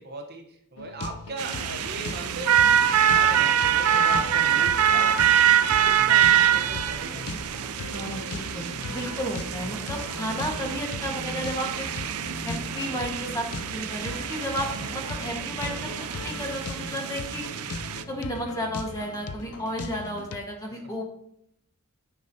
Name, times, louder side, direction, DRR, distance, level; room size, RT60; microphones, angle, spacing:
voice 1, 0.0-7.3 14.9-15.1 19.5-19.9 20.7-21.0, right 2 dB, 45° right, 4 dB, 0.9 m, -39 dB
sound 1, 0.8-20.4, left 3 dB, 85° left, 0.5 m, -39 dB
sound 2, 1.4-16.7, right 1 dB, 20° right, 1.2 m, -44 dB
sound 3, 1.4-18.0, right 9 dB, 90° right, 0.5 m, -25 dB
voice 2, 7.9-11.9 12.4-13.5 13.7-15.9 16.2-17.4 18.1-21.0, equal, 15° left, 1 dB, 1.3 m, -33 dB
9.5 x 5.4 x 2.7 m, 0.72 s
head